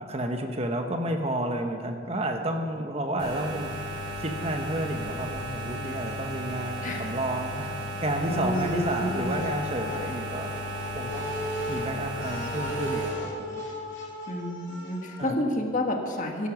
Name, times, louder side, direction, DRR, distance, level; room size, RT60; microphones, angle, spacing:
voice 1, 0.0-3.7 4.2-7.7 8.0-10.5 10.9-11.3 11.7-13.6 15.2-15.4, right 1 dB, 30° right, 4 dB, 1.1 m, -31 dB
sound 1, 3.2-13.1, equal, 70° right, 4.7 m, -35 dB
voice 2, 8.3-9.4 14.3-16.5, left 1 dB, 40° left, 2 dB, 1.7 m, -29 dB
sound 2, 8.5-15.2, left 1 dB, 65° left, 3.6 m, -37 dB
17.0 x 12.5 x 6.1 m, 2.2 s
head